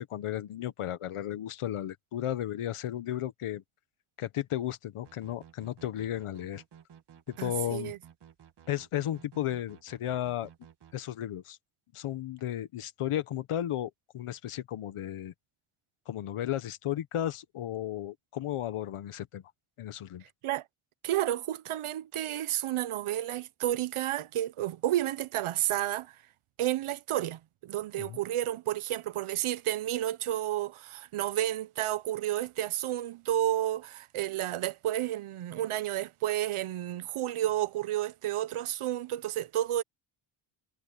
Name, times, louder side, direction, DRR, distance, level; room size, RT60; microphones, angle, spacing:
voice 1, 0.0-3.6 4.2-6.6 7.3-7.9 8.7-10.5 10.9-11.6 11.9-15.3 16.1-19.4 19.8-20.2 28.0-28.2, left 12 dB, 90° left, 1.4 m, -34 dB
sound 1, 5.0-11.0, right 9 dB, 55° right, 1.7 m, -55 dB
voice 2, 7.4-8.0 20.4-20.6 21.0-26.2 26.6-39.8, right 13 dB, 75° right, 0.9 m, -31 dB
wide cardioid pair, 160°, 50 cm